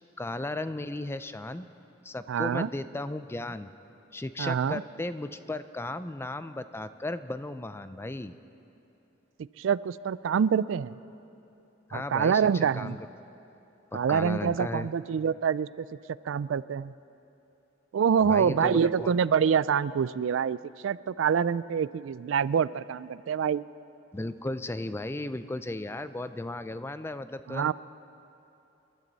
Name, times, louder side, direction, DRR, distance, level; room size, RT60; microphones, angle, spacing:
voice 1, 0.2-1.7 2.0-3.7 4.1-8.3 11.9-13.0 13.9-14.9 18.2-19.1 24.1-27.7, left 2 dB, 15° left, 12 dB, 0.4 m, -35 dB
voice 2, 2.3-2.7 4.4-4.8 9.6-10.9 11.9-13.0 13.9-15.9 16.3-16.9 17.9-20.6 20.8-23.6 27.5-27.7, right 7 dB, 85° right, 18 dB, 0.3 m, -26 dB
28.0 x 12.5 x 4.1 m, 2.8 s
head